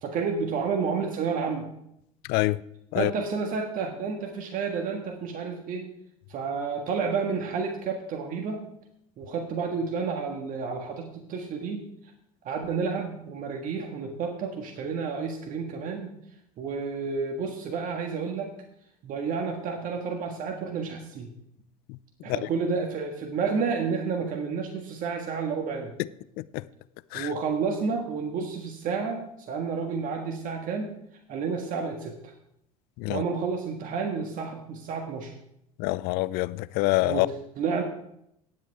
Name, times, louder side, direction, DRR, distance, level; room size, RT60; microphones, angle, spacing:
voice 1, 0.0-1.7 2.9-5.9 6.3-8.7 9.2-11.8 12.4-16.1 16.6-18.5 19.0-21.3 22.2-25.9 27.1-30.9 31.3-32.3 33.1-35.3 37.0-37.8, right 5 dB, 45° right, 3 dB, 1.6 m, -30 dB
voice 2, 35.8-37.3, left 20 dB, 55° left, 18 dB, 0.5 m, -26 dB
18.5 x 7.9 x 3.5 m, 0.76 s
hypercardioid pair, 80°, 19 cm